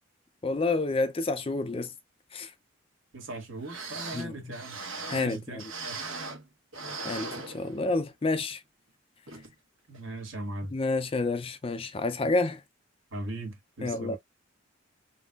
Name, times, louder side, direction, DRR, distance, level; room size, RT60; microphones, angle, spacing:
voice 1, 0.4-1.9 2.3-2.5 4.1-4.6 5.1-5.7 7.0-8.6 10.7-12.6 13.8-14.2, left 3 dB, 25° left, 0.4 m, -29 dB
voice 2, 3.1-4.8 5.1-6.0 9.9-10.7 13.1-14.2, right 2 dB, 70° right, 1.6 m, -39 dB
sound 1, 3.4-3.5 3.6-6.5 6.7-8.1 8.5-8.6 9.3-9.5 9.9-10.0, right 3 dB, 85° right, 1.3 m, -39 dB
3.7 x 2.9 x 2.3 m
head